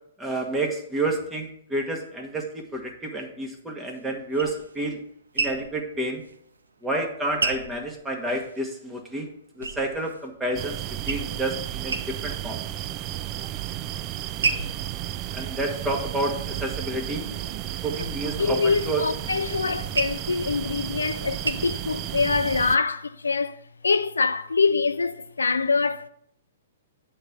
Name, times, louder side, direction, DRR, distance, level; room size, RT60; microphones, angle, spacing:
voice 1, 0.2-5.0 5.3-6.2 6.8-9.3 9.6-12.6 15.3-17.2 17.8-19.0, right 2 dB, 10° right, 1.3 m, -29 dB
sound 1, 3.9-8.7 9.0-10.3 10.7-11.5 11.8-12.5 12.9-13.5 14.0-16.7 17.2-21.5, right 3 dB, 75° right, 0.6 m, -33 dB
sound 2, 10.5-22.8, right 12 dB, 30° right, 0.3 m, -33 dB
voice 2, 18.4-26.1, left 4 dB, 75° left, 0.4 m, -25 dB
8.9 x 3.5 x 5.6 m
figure-of-eight pair, 115°, 0 cm